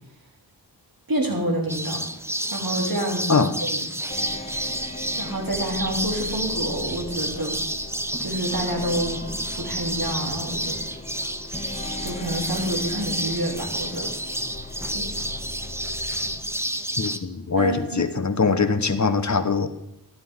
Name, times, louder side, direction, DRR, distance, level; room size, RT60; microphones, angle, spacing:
voice 1, 1.1-2.0 2.5-3.8 5.2-7.5 8.2-10.8 12.0-14.1 14.9-15.1 17.6-18.1, right 1 dB, 55° right, 0 dB, 3.0 m, -28 dB
sound 1, 1.7-17.2, right 1 dB, 5° right, 0.8 m, -30 dB
sound 2, 4.1-16.4, left 2 dB, 15° left, 1.4 m, -38 dB
voice 2, 17.0-19.7, left 4 dB, 45° left, 9 dB, 1.0 m, -22 dB
13.5 x 11.5 x 3.6 m, 0.84 s
wide cardioid pair, 60°, 41 cm